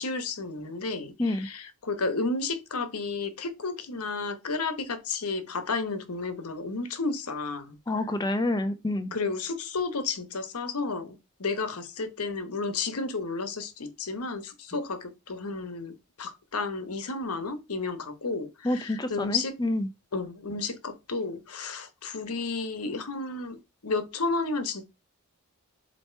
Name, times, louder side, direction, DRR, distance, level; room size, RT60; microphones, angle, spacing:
voice 1, 0.0-1.1 1.4-7.8 9.1-18.5 18.8-19.6 20.1-23.6 23.8-24.8, left 3 dB, 85° left, 1.0 m, -32 dB
voice 2, 7.9-9.1 18.6-19.9, left 1 dB, 20° left, 0.5 m, -28 dB
7.7 x 2.9 x 4.5 m
head